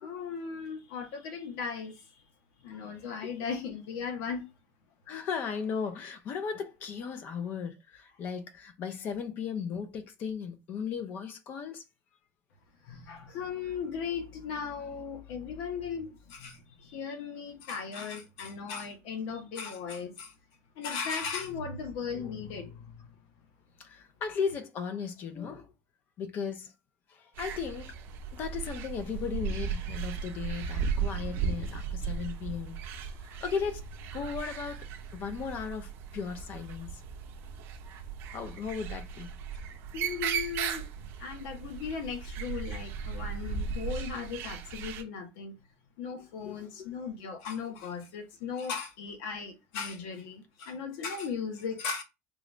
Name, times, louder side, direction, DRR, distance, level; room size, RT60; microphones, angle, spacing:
voice 1, 0.0-2.0 2.6-4.5 12.8-20.3 20.8-23.1 39.9-45.5 46.0-52.0, left 6 dB, 85° left, 0.9 m, -37 dB
voice 2, 3.0-3.3 5.1-11.8 22.1-22.3 23.8-25.7 26.2-26.7 27.1-27.9 28.3-32.8 33.3-33.9 34.1-34.9 35.1-37.0 38.3-39.3 46.4-46.9, left 6 dB, 40° left, 0.6 m, -36 dB
sound 1, 27.3-45.0, right 6 dB, 50° right, 0.6 m, -36 dB
3.8 x 2.4 x 3.1 m
cardioid pair, 155°, 5 cm